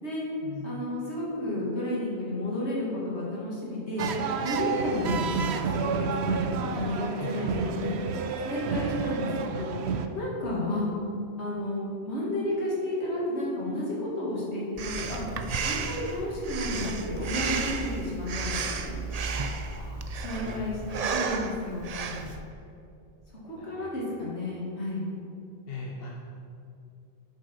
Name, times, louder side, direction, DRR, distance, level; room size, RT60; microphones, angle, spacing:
voice 1, 0.6-4.1 4.4-8.0 8.4-9.3 9.6-9.7 10.1-10.9 11.4-15.2 15.6-19.0 20.2-21.9 23.4-25.0, left 1 dB, 75° left, -6 dB, 2.6 m, -32 dB
sound 1, 4.0-10.1, right 5 dB, 75° right, 0.9 m, -30 dB
Breathing, 14.8-22.4, right 4 dB, 50° right, 0.5 m, -33 dB
voice 2, 19.7-20.7 22.1-22.4 23.6-23.7 25.7-26.1, left 4 dB, 60° left, -2 dB, 1.1 m, -41 dB
8.6 x 6.8 x 5.4 m, 2.7 s
omnidirectional pair, 1.1 m